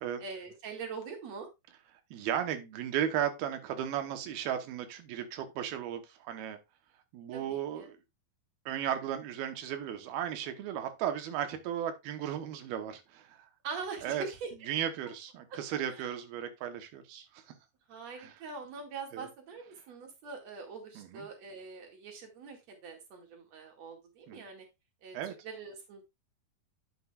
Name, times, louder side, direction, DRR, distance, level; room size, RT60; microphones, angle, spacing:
voice 1, 0.2-1.5 7.3-7.9 13.6-14.5 15.5-15.6 15.9-16.1 17.9-24.6 25.0-26.0, right 5 dB, 50° right, 2.9 m, -43 dB
voice 2, 2.1-6.6 7.1-8.0 8.7-13.5 14.0-14.2 14.7-17.4 18.2-18.4 19.1-19.3 21.0-21.3 24.3-24.4 25.1-25.3, right 10 dB, 90° right, 2.9 m, -35 dB
9.6 x 7.8 x 2.3 m
omnidirectional pair, 4.3 m